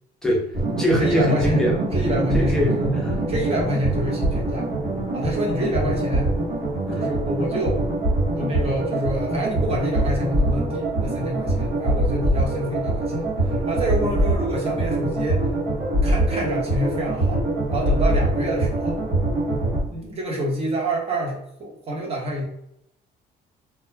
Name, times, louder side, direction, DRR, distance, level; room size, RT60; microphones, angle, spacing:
voice 1, 0.2-1.8 2.3-3.2 6.9-7.1, equal, 5° left, -2 dB, 0.7 m, -23 dB
sound 1, 0.5-19.8, right 1 dB, 60° right, 1.1 m, -23 dB
voice 2, 1.0-1.6 1.9-2.9 3.3-4.7 5.1-6.3 6.9-7.8 8.3-15.4 16.0-17.4 17.7-19.0 19.7-22.4, right 1 dB, 35° right, -2 dB, 1.0 m, -27 dB
2.3 x 2.2 x 3.1 m, 0.76 s
cardioid pair, 110°, 17 cm